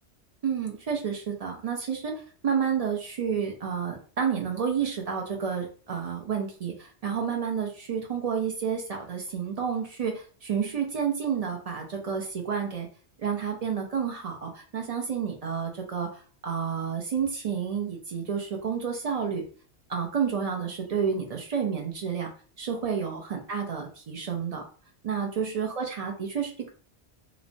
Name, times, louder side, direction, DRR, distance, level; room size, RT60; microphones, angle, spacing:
voice 1, 0.4-12.9 13.2-16.1 16.4-19.4 19.9-22.3 22.6-24.6 25.0-26.7, right 7 dB, 60° right, 1 dB, 0.4 m, -30 dB
3.0 x 2.0 x 2.5 m, 0.41 s
omnidirectional pair, 1.2 m